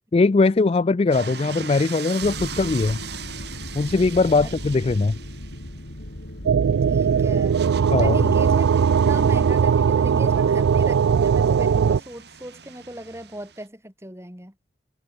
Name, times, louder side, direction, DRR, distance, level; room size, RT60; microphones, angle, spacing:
voice 1, 0.1-3.0 3.7-5.2 7.9-8.2, left 3 dB, 30° left, 0.3 m, -20 dB
sound 1, 1.1-13.7, right 7 dB, 55° right, 3.0 m, -40 dB
sound 2, 2.2-10.0, left 1 dB, 65° left, 3.1 m, -38 dB
sound 3, 6.5-12.0, right 7 dB, 90° right, 0.4 m, -19 dB
voice 2, 6.9-7.6 8.0-14.5, right 1 dB, 15° right, 5.0 m, -38 dB
head